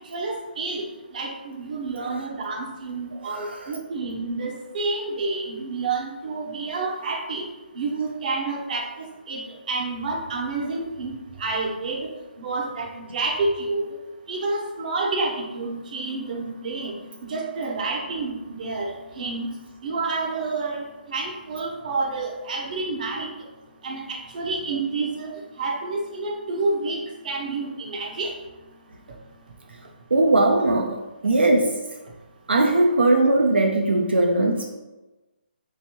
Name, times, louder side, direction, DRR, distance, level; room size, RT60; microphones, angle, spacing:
voice 1, 0.1-0.9 1.1-7.4 7.8-8.9 9.3-9.4 9.7-12.1 12.4-13.8 14.3-17.0 17.3-19.5 19.8-23.3 23.8-27.0 27.2-28.3, right 3 dB, 50° right, 0 dB, 0.7 m, -29 dB
voice 2, 30.1-31.7 32.5-34.7, right 2 dB, 85° right, 2 dB, 0.4 m, -19 dB
3.3 x 3.0 x 2.9 m, 1.1 s
figure-of-eight pair, 150°, 6 cm